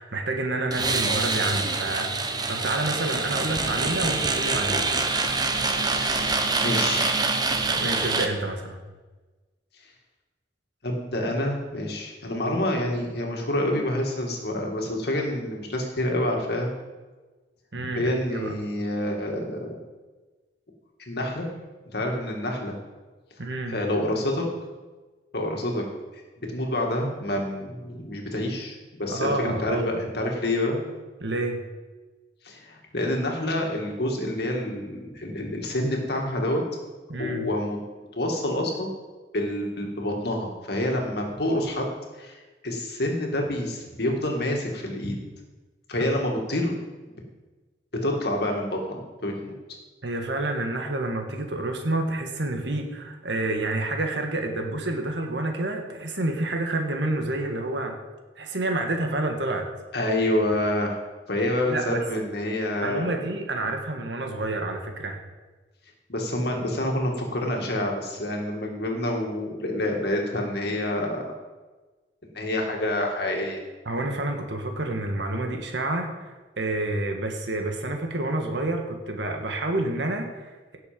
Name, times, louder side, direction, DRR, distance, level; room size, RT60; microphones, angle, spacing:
voice 1, 0.0-4.9 7.8-8.8 17.7-18.6 23.4-23.8 29.1-30.0 31.2-31.6 37.1-37.5 46.0-46.1 50.0-58.0 58.3-59.6 61.7-62.0 62.8-65.2 73.8-80.8, right 2 dB, 75° right, 3 dB, 1.6 m, -29 dB
sound 1, 0.7-8.3, right 3 dB, 25° right, 0.9 m, -25 dB
voice 2, 5.9-7.3 10.8-16.7 17.7-19.8 21.1-21.5 21.9-22.8 23.4-24.4 25.3-25.8 26.5-30.8 32.4-36.6 37.2-37.8 38.2-38.9 39.3-41.9 42.2-45.2 45.9-46.7 48.0-49.8 59.9-61.0 61.3-63.2 66.1-71.3 72.3-73.6, left 1 dB, 65° left, 1 dB, 2.3 m, -27 dB
17.0 x 6.7 x 5.3 m, 1.2 s
head